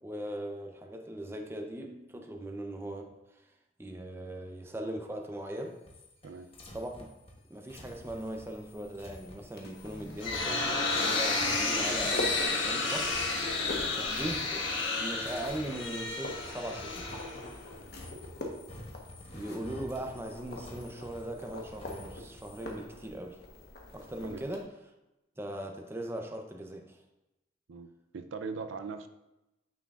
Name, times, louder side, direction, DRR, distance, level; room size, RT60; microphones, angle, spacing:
voice 1, 0.0-3.5 3.8-5.8 6.7-6.9 7.5-13.7 13.9-17.2 19.3-23.4 23.9-24.7 25.4-27.0, right 1 dB, 15° right, 3 dB, 0.6 m, -39 dB
sound 1, 5.6-13.8 14.1-14.9 15.2-22.7, left 1 dB, 30° left, 1.0 m, -50 dB
sound 2, 7.9-24.6, left 1 dB, 55° left, 1.1 m, -44 dB
sound 3, 9.9-17.7, left 3 dB, 85° left, 1.4 m, -31 dB
voice 2, 28.1-29.1, right 4 dB, 90° right, 8 dB, 0.5 m, -39 dB
9.3 x 6.2 x 2.4 m, 0.96 s
head